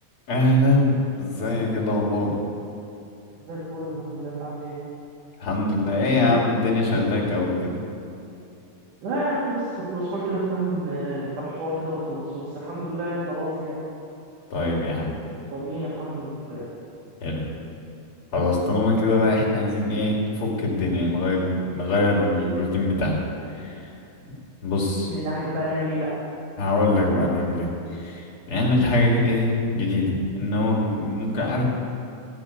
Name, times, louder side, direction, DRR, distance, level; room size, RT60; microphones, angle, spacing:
voice 1, 0.3-2.3 5.4-7.7 14.5-15.1 17.2-17.5 18.3-23.2 23.5-23.8 24.6-25.1 26.6-27.7 27.9-31.6, left 2 dB, 45° left, -3 dB, 3.1 m, -23 dB
voice 2, 3.4-4.8 5.7-5.8 6.1-6.3 9.0-13.8 14.7-15.0 15.5-16.7 25.1-26.1, right 1 dB, 85° right, -8 dB, 4.1 m, -29 dB
15.5 x 6.1 x 9.5 m, 2.7 s
omnidirectional pair, 3.5 m